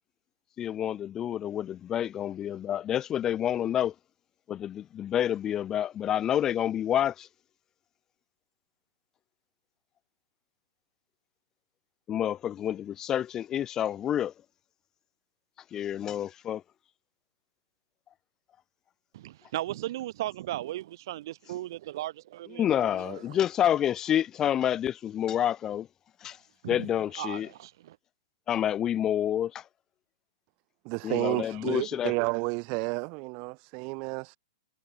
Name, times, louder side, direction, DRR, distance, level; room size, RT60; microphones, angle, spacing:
voice 1, 0.6-3.9 4.5-7.3 12.1-14.3 15.7-16.6 22.6-25.9 26.2-26.4 26.7-27.5 28.5-29.6 31.0-32.1, left 10 dB, 20° left, 0.6 m, -28 dB
voice 2, 19.1-23.4 26.6-26.9 27.1-28.0, right 15 dB, 55° right, 3.2 m, -37 dB
voice 3, 30.8-34.4, right 33 dB, 35° right, 0.6 m, -31 dB
hypercardioid pair, 150°, 3 cm